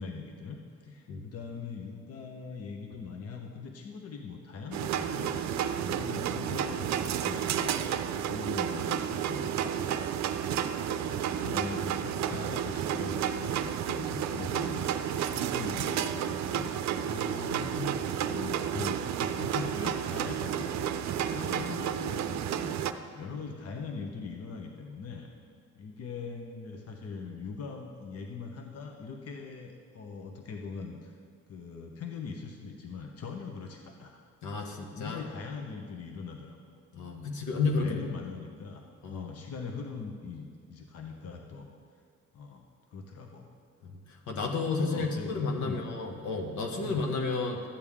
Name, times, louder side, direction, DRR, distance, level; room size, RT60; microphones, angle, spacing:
voice 1, 0.0-7.8 8.1-9.5 10.1-14.8 15.2-16.7 17.2-17.5 18.0-25.3 25.7-31.1 31.5-34.2 34.6-36.6 37.1-41.7 42.3-43.5 44.8-45.8 46.8-47.1, left 5 dB, 55° left, 2 dB, 1.0 m, -41 dB
sound 1, 4.7-22.9, right 9 dB, 65° right, 0.5 m, -31 dB
voice 2, 17.0-18.1 34.4-35.2 36.9-38.0 39.0-39.3 44.3-47.6, left 3 dB, 75° left, 2 dB, 1.3 m, -32 dB
13.0 x 8.4 x 3.6 m, 2.1 s
cardioid pair, 90°, 30 cm